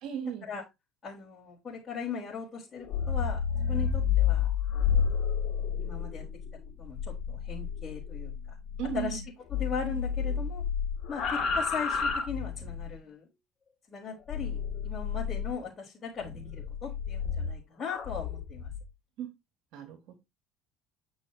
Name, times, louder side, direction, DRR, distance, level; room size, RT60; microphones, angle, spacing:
voice 1, 0.0-0.5 8.8-9.2 19.2-19.3 19.7-20.2, right 9 dB, 65° right, 2.8 m, -36 dB
voice 2, 1.0-3.4 3.7-5.1 5.8-6.2 6.8-8.6 8.9-9.2 9.5-10.6 11.1-13.3 13.9-18.7, left 6 dB, 25° left, 4.2 m, -39 dB
sound 1, 2.8-9.2 9.5-12.9 14.3-15.6 16.2-18.8, left 7 dB, 45° left, 3.6 m, -30 dB
9.8 x 6.3 x 3.1 m
supercardioid pair, 90°, 0 cm